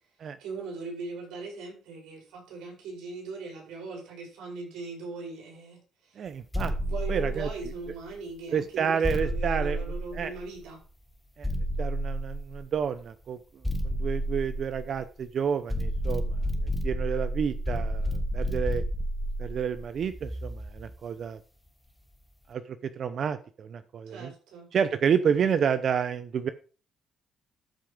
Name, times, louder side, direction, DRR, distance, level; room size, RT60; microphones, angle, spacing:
voice 1, 0.4-5.8 6.1-6.2 6.7-10.8 24.1-24.7, right 3 dB, 90° right, 0 dB, 5.4 m, -40 dB
voice 2, 6.2-6.7 7.1-7.5 8.5-9.8 10.1-10.3 11.4-11.5 11.8-13.4 13.8-16.3 16.8-18.8 19.4-21.4 22.5-24.3 24.7-26.5, right 7 dB, 60° right, 12 dB, 0.7 m, -29 dB
sound 1, 6.5-8.0 9.0-10.6 11.4-12.8 13.6-15.2 15.7-21.0, equal, 5° left, 1.6 m, -31 dB
13.0 x 5.8 x 5.1 m, 0.39 s
cardioid pair, 90°, 0 cm